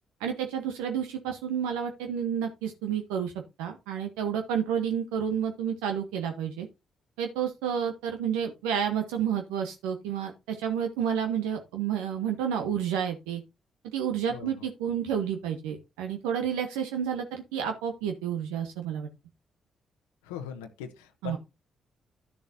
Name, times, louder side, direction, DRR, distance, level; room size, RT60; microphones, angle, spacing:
voice 1, 0.2-3.3 3.6-6.7 7.2-13.4 13.9-19.1 21.2-21.4, right 8 dB, 80° right, 1.0 m, -30 dB
voice 2, 20.2-21.4, left 8 dB, 85° left, 1.0 m, -39 dB
12.5 x 7.0 x 2.7 m
hypercardioid pair, 40°, 0 cm